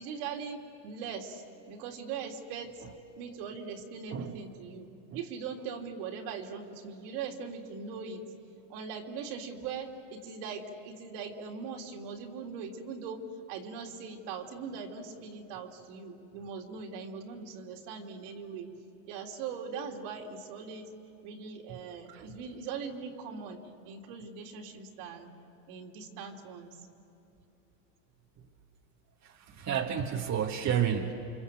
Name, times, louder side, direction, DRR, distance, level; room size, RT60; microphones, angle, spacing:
voice 1, 0.0-2.8 3.2-8.2 8.7-18.7 19.1-20.9 21.2-25.3 25.7-26.9, right 5 dB, 65° right, 1 dB, 3.4 m, -41 dB
voice 2, 29.6-31.1, right 8 dB, 35° right, 1 dB, 1.7 m, -30 dB
29.0 x 25.5 x 7.8 m, 2.9 s
hypercardioid pair, 100°, 49 cm